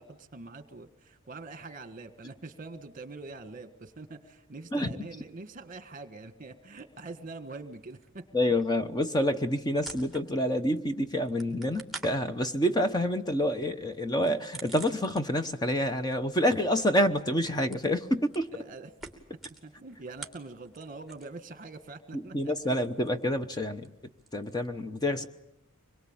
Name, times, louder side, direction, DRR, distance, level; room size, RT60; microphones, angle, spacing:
voice 1, 0.0-8.3 18.5-18.9 19.6-22.4 22.7-22.9, right 3 dB, 40° right, 11 dB, 1.6 m, -44 dB
sound 1, 6.8-7.6 7.9-10.6 10.9-15.6 15.9-21.4 21.7-24.7, right 3 dB, ahead, 2.7 m, -48 dB
voice 2, 8.3-18.5 22.1-23.9 24.3-25.3, equal, 20° left, 8 dB, 0.9 m, -28 dB
25.0 x 22.5 x 8.8 m, 0.82 s
head